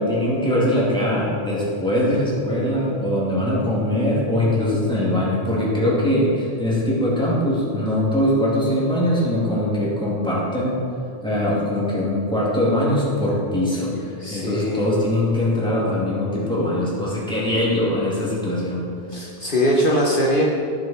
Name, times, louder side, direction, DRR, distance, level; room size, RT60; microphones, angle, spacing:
voice 1, 0.0-10.8 11.2-18.8, left 1 dB, 5° left, -7 dB, 2.8 m, -22 dB
voice 2, 14.2-14.8 19.1-20.4, equal, 55° left, -3 dB, 1.3 m, -21 dB
17.0 x 6.7 x 4.5 m, 2.5 s
omnidirectional pair, 1.1 m